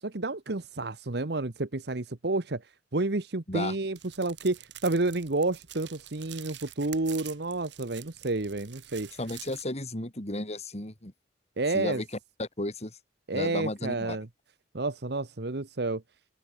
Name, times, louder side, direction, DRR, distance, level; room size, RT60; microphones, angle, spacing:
voice 1, 0.0-9.1 11.6-12.0 13.3-14.3 14.7-16.0, right 2 dB, 65° right, 1.2 m, -30 dB
sound 1, 4.0-9.6, right 12 dB, 80° right, 3.6 m, -47 dB
voice 2, 9.2-11.1 11.7-12.1 12.4-13.0 13.3-14.2, left 1 dB, 40° left, 4.2 m, -33 dB
open air
head